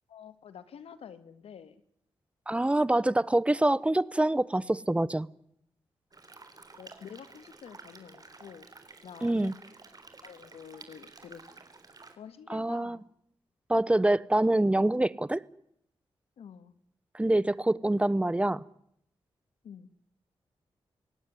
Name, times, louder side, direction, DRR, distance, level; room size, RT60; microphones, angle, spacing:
voice 1, 0.1-1.8 6.8-8.7 9.0-9.5 10.2-11.6 12.2-13.0 16.4-16.7 19.6-19.9, left 7 dB, 90° left, 13 dB, 1.7 m, -48 dB
voice 2, 2.5-5.3 9.2-9.5 12.5-13.0 13.7-15.4 17.1-18.6, right 1 dB, 10° right, 20 dB, 0.9 m, -25 dB
sound 1, 6.1-12.1, right 3 dB, 40° right, 3.7 m, -52 dB
24.5 x 17.5 x 9.9 m, 0.73 s
cardioid pair, 70°, 10 cm